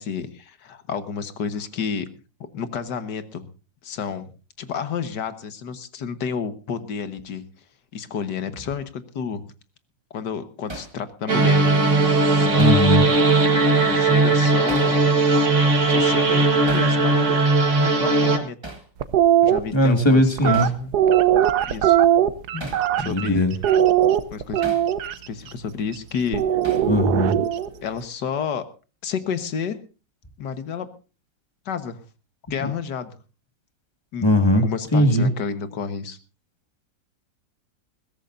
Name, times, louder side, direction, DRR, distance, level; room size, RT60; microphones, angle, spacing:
voice 1, 0.0-2.1 2.5-3.5 3.8-4.3 4.6-7.4 7.9-9.4 10.1-11.8 12.4-12.9 13.8-15.1 15.9-17.4 17.8-18.6 19.4-20.9 21.6-22.0 23.0-23.5 24.3-24.8 25.3-26.6 27.8-28.6 29.0-29.8 30.4-30.9 31.7-32.0 32.5-33.1 34.1-36.2, left 6 dB, 70° left, 11 dB, 1.8 m, -30 dB
Hammer, 10.7-11.0 12.6-12.9 14.7-15.0 16.7-16.9 18.6-18.9 20.5-20.8 22.6-22.9 24.6-24.9 26.6-26.9, right 1 dB, 15° right, 1.8 m, -36 dB
sound 1, 11.3-18.4, right 3 dB, 45° right, 1.9 m, -18 dB
voice 2, 12.6-13.1 19.7-20.7 22.5-22.7 23.0-23.5 26.9-27.4 34.2-34.6 34.9-35.3, left 1 dB, 15° left, 6 dB, 1.9 m, -19 dB
sound 2, 19.0-19.6 20.4-23.3 23.6-25.1 26.3-27.7, right 11 dB, 65° right, 1.3 m, -19 dB
21.0 x 16.0 x 2.6 m, 0.33 s
omnidirectional pair, 2.0 m